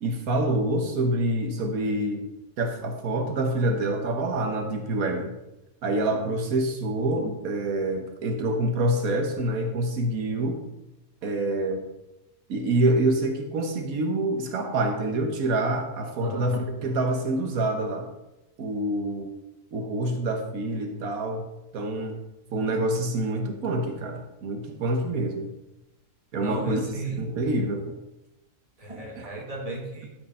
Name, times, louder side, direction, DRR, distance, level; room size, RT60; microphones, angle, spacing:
voice 1, 0.0-2.2 2.6-5.3 5.8-10.6 11.2-11.8 12.5-18.1 18.6-19.3 19.7-21.4 21.7-22.2 22.5-25.5 26.3-26.8 27.2-27.8 29.2-29.3, right 1 dB, 85° right, 4 dB, 1.5 m, -26 dB
voice 2, 16.2-16.5 26.4-27.3 28.8-30.1, right 1 dB, 25° right, -2 dB, 2.1 m, -34 dB
12.0 x 5.2 x 5.4 m, 0.96 s
omnidirectional pair, 1.4 m